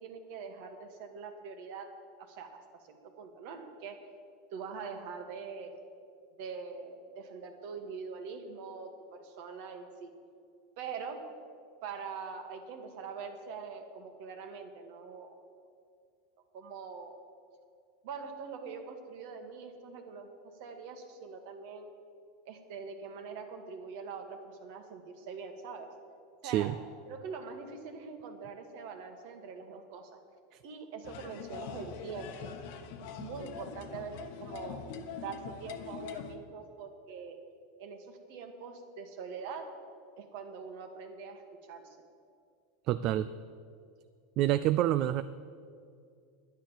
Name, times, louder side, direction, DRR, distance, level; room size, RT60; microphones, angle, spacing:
voice 1, 0.0-1.9 2.2-4.0 4.5-5.7 6.4-10.1 10.8-11.2 11.8-15.4 16.5-17.2 18.0-20.3 20.6-21.9 22.5-25.9 26.4-26.7 27.1-30.2 30.6-32.5 33.2-34.2 34.4-34.8 35.2-37.4 37.8-39.7 40.2-41.4 41.7-42.0, right 5 dB, 65° right, 5 dB, 1.8 m, -43 dB
voice 2, 26.4-26.7 30.5-30.6 42.8-43.3 44.4-45.2, right 13 dB, 45° right, 13 dB, 0.4 m, -27 dB
sound 1, 31.0-36.3, left 7 dB, 65° left, 1.1 m, -43 dB
10.5 x 10.5 x 7.2 m, 2.3 s
supercardioid pair, 135°, 0 cm